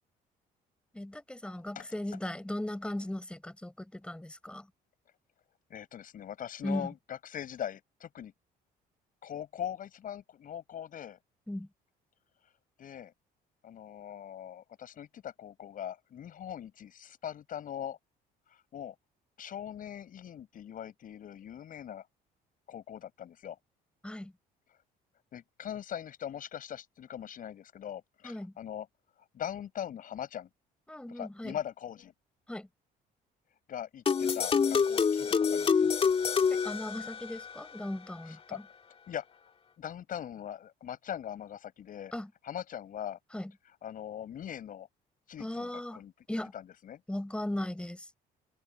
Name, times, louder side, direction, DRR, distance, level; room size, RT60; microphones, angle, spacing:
voice 1, 0.9-4.7 6.6-6.9 11.5-11.7 24.0-24.3 28.2-28.5 30.9-31.6 32.5-32.7 36.5-38.6 42.1-42.3 43.3-43.5 45.4-46.0 46.3-46.5 47.1-48.1, left 1 dB, 5° left, 6.1 m, -37 dB
voice 2, 5.7-8.3 9.2-11.2 12.8-13.1 13.6-18.0 18.5-18.9 19.4-22.0 22.7-23.6 25.3-28.9 29.3-30.5 31.1-32.1 33.7-35.9 38.3-38.6 39.1-39.3 39.8-42.1 42.4-43.2 43.8-44.9 45.3-46.1 46.5-47.0, left 10 dB, 55° left, 7.5 m, -41 dB
sound 1, 34.1-37.5, left 6 dB, 35° left, 2.5 m, -27 dB
open air
cardioid pair, 110°, 17 cm